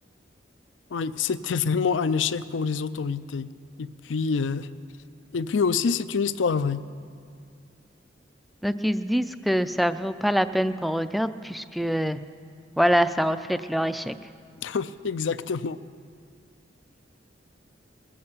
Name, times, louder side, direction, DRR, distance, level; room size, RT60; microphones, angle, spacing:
voice 1, 0.9-3.5 3.8-4.7 5.3-6.8 14.6-15.8, left 5 dB, 80° left, 14 dB, 0.5 m, -26 dB
voice 2, 8.6-12.2 12.8-14.1, equal, ahead, 11 dB, 0.3 m, -25 dB
20.5 x 8.6 x 7.2 m, 2.3 s
head